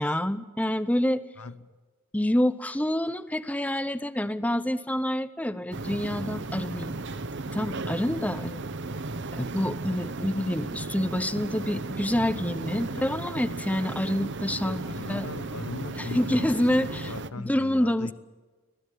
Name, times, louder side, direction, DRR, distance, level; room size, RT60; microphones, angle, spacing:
voice 1, 0.0-1.2 2.1-7.0 7.5-8.6 9.4-14.8 15.1-15.3 15.9-17.1 17.4-18.1, left 1 dB, 5° left, 0.7 m, -27 dB
sound 1, 5.7-17.3, right 2 dB, 55° right, 1.0 m, -35 dB
voice 2, 8.3-8.6 12.9-13.2 14.6-18.1, left 3 dB, 80° left, 1.0 m, -39 dB
25.5 x 17.5 x 9.1 m
head